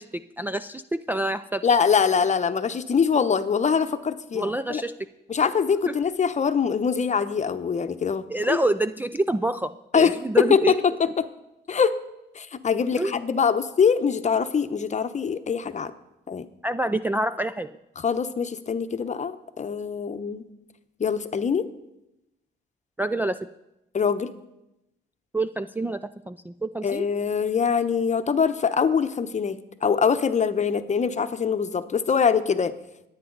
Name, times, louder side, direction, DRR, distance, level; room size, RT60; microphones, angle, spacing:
voice 1, 0.0-1.8 4.3-4.9 5.9-6.0 8.3-10.8 13.0-13.1 16.6-17.7 23.0-23.5 25.3-27.1, right 1 dB, 10° right, 7 dB, 0.4 m, -27 dB
voice 2, 1.6-4.8 5.3-8.6 9.9-11.3 11.7-12.0 12.4-15.9 16.3-16.5 18.0-20.4 21.0-21.7 23.9-24.3 26.8-32.7, left 6 dB, 35° left, 10 dB, 0.9 m, -23 dB
25.5 x 9.0 x 4.0 m, 0.91 s
cardioid pair, 90°, 20 cm